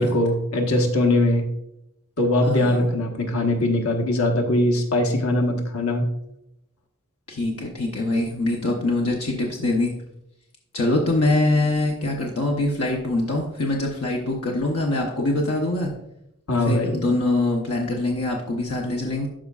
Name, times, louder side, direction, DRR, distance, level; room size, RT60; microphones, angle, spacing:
voice 1, 0.0-1.4 2.2-6.0 16.5-17.0, left 1 dB, 70° left, 3 dB, 1.2 m, -21 dB
voice 2, 2.4-2.8 7.3-9.9 10.7-15.9 16.5-19.3, left 2 dB, 90° left, 0 dB, 0.9 m, -24 dB
12.5 x 5.1 x 2.4 m, 0.82 s
head